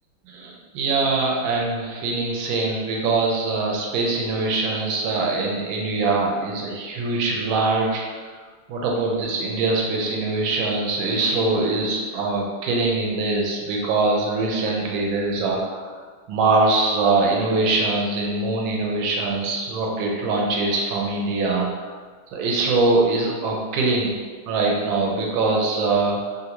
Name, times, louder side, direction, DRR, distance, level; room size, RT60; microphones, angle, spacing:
voice 1, 0.3-8.3 8.7-16.0 16.3-21.9 22.3-24.1 24.5-26.4, right 3 dB, 75° right, -1 dB, 1.2 m, -23 dB
3.3 x 2.5 x 2.8 m, 1.5 s
omnidirectional pair, 2.3 m